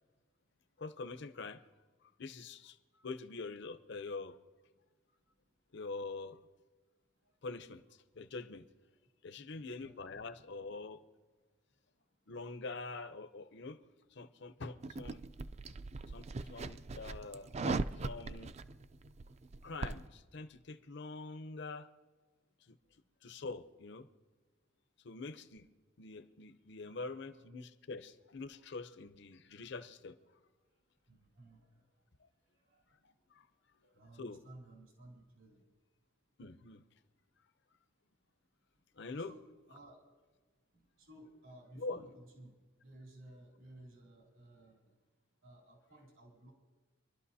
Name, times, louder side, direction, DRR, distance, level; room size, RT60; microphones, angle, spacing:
voice 1, 0.8-1.6 2.2-4.4 5.7-6.4 7.4-7.8 8.2-8.6 9.2-11.0 12.3-13.8 14.1-15.2 16.1-18.5 19.6-21.9 22.7-22.8 23.2-24.1 25.0-25.7 26.0-30.2 32.2-32.3 33.3-33.5 34.2-34.4 36.4-36.8 39.0-39.3 41.8-42.0, left 3 dB, 60° left, 11 dB, 0.7 m, -45 dB
voice 2, 9.5-10.2 26.8-27.4 31.1-31.8 32.6-32.8 33.7-35.6 39.0-40.0 40.7-44.8 45.4-46.5, right 1 dB, 80° right, -1 dB, 2.8 m, -57 dB
sound 1, 14.8-20.1, right 3 dB, 35° right, 0.4 m, -40 dB
25.5 x 12.0 x 2.8 m, 1.3 s
head